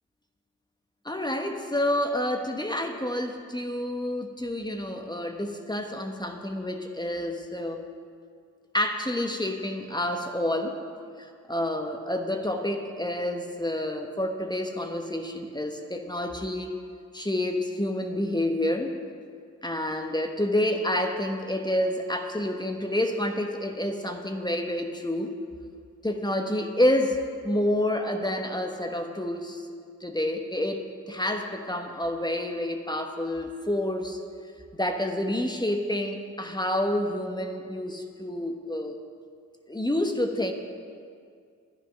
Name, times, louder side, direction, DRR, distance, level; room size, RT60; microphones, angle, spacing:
voice 1, 1.0-7.8 8.7-10.8 11.2-16.7 17.1-19.0 19.6-25.3 26.0-29.7 30.0-34.2 34.8-39.0 39.7-40.5, left 1 dB, 15° left, 4 dB, 1.2 m, -28 dB
10.5 x 9.9 x 5.9 m, 2.2 s
supercardioid pair, 45°, 32 cm